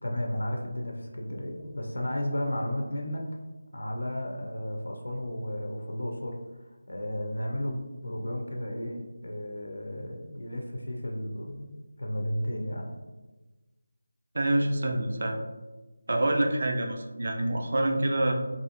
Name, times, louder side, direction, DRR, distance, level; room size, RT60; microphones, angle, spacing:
voice 1, 0.0-3.3 3.7-6.4 6.9-11.7 12.0-12.9, left 1 dB, 80° left, 2 dB, 0.5 m, -33 dB
voice 2, 14.3-15.4 16.1-18.3, right 1 dB, 60° right, 3 dB, 0.4 m, -26 dB
2.6 x 2.4 x 2.8 m, 1.2 s
figure-of-eight pair, 165°, 0 cm